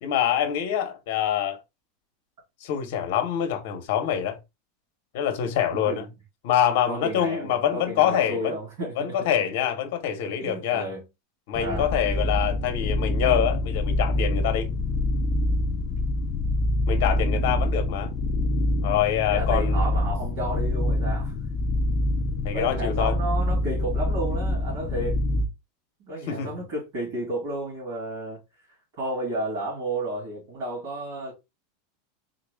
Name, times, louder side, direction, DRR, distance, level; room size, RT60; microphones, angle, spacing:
voice 1, 0.0-1.6 2.6-4.4 5.1-6.0 6.4-8.6 9.0-10.9 11.5-14.7 16.9-18.1 18.8-19.8 22.4-23.1 26.3-26.5, left 10 dB, 50° left, 0.8 m, -25 dB
voice 2, 5.7-6.1 6.9-9.2 10.4-11.1 11.6-11.9 19.3-21.3 22.5-25.2 26.0-28.4 29.0-31.3, right 1 dB, 50° right, 2.4 m, -32 dB
sound 1, 11.5-25.5, left 1 dB, 25° left, 0.4 m, -25 dB
3.9 x 2.3 x 3.3 m
supercardioid pair, 170°, 0 cm